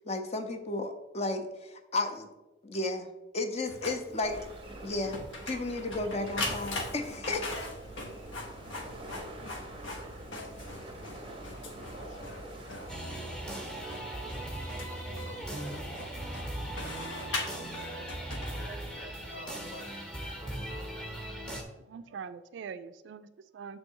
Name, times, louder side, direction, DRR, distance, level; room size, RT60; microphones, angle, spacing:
voice 1, 0.1-2.3 2.6-3.1 3.3-4.4 4.8-5.2 5.5-7.7, left 2 dB, 35° left, 6 dB, 0.6 m, -33 dB
Printer, 3.7-19.0, left 2 dB, 85° left, 1.0 m, -41 dB
sound 1, 4.2-13.0, right 1 dB, 30° right, 0.6 m, -46 dB
voice 2, 11.8-14.0 14.3-16.4 17.0-18.1 18.5-20.0 20.3-20.9, equal, 70° left, 2 dB, 1.4 m, -50 dB
sound 2, 12.9-21.6, right 1 dB, 5° left, 0.8 m, -39 dB
voice 3, 21.8-23.8, right 6 dB, 65° right, 12 dB, 0.3 m, -43 dB
6.4 x 3.2 x 4.5 m, 1.1 s
head